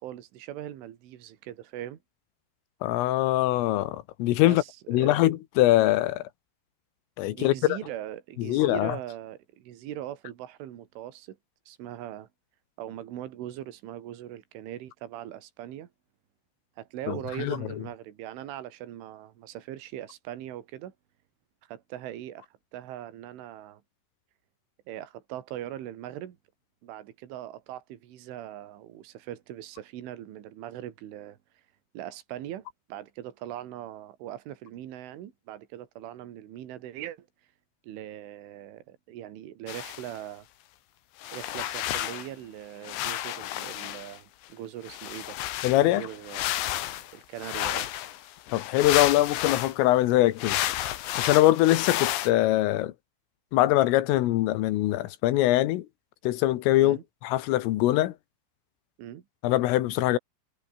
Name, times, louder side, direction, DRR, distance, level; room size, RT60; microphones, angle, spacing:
voice 1, 0.0-2.0 4.4-5.1 7.3-11.4 11.7-12.3 12.8-15.9 16.8-20.9 21.7-23.8 24.9-26.4 26.8-31.4 31.9-37.3 37.8-40.5 41.3-45.4 45.7-46.5 47.1-47.9 56.8-57.0 59.0-59.2, right 12 dB, 75° right, 4.7 m, -40 dB
voice 2, 2.8-4.6 4.9-6.2 7.2-7.8 8.4-9.0 17.1-17.6 45.6-46.0 48.5-50.6 51.2-52.9 53.5-55.9 56.2-58.1 59.4-60.2, left 15 dB, 85° left, 4.0 m, -23 dB
sound 1, 39.7-40.2 41.2-42.3 42.8-44.2 44.9-49.7 50.4-52.3, left 14 dB, 70° left, 3.5 m, -31 dB
omnidirectional pair, 5.7 m